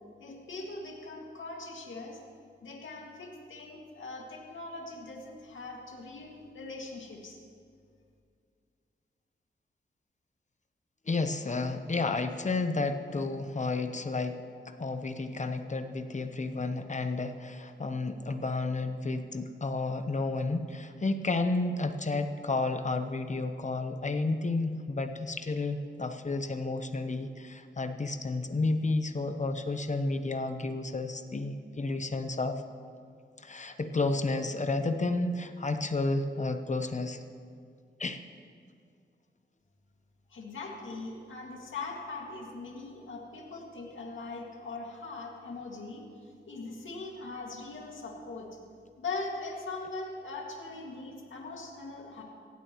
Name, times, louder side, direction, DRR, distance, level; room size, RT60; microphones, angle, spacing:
voice 1, 0.2-2.2 2.6-7.4 40.3-46.0 46.5-48.6 49.0-52.2, left 3 dB, 75° left, -1 dB, 2.2 m, -41 dB
voice 2, 11.1-14.4 14.8-32.5 33.4-37.2 38.0-38.2, left 3 dB, 35° left, 8 dB, 0.9 m, -31 dB
18.0 x 16.0 x 3.1 m, 2.2 s
cardioid pair, 65°, 20 cm